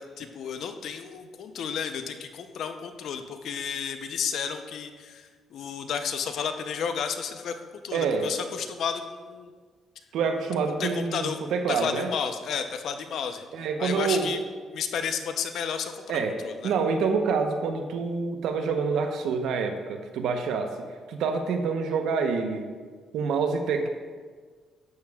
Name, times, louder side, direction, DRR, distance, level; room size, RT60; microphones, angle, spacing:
voice 1, 0.0-9.5 10.7-11.4 11.7-13.4 13.8-14.4 14.7-16.7, left 7 dB, 70° left, 7 dB, 0.7 m, -32 dB
voice 2, 7.9-8.3 10.1-12.1 13.5-14.3 16.1-16.3 16.6-20.7 21.1-22.7 23.1-23.9, right 5 dB, 80° right, 5 dB, 0.9 m, -27 dB
11.0 x 8.5 x 2.4 m, 1.5 s
cardioid pair, 90°, 0 cm